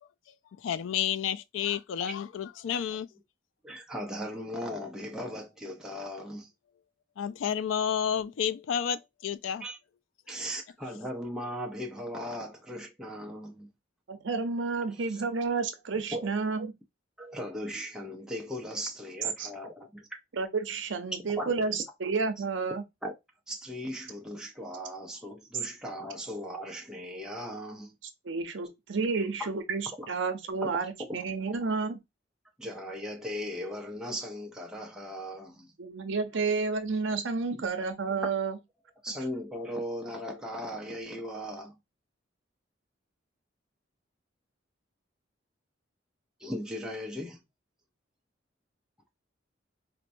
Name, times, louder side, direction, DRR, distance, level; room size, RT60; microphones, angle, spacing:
voice 1, 0.6-3.1 7.2-9.6 10.3-10.5, left 8 dB, 85° left, 0.3 m, -30 dB
voice 2, 3.6-6.5 9.6-9.8 10.3-13.7 16.1-16.3 17.2-20.1 21.4-21.7 23.0-23.1 23.5-27.9 29.1-29.5 32.6-35.7 37.6-37.7 39.0-41.7 46.4-47.4, equal, 5° right, 0.6 m, -38 dB
voice 3, 14.1-16.7 19.4-19.5 20.3-22.8 28.2-32.0 35.8-38.6, right 4 dB, 80° right, 0.7 m, -31 dB
4.4 x 2.1 x 2.5 m
head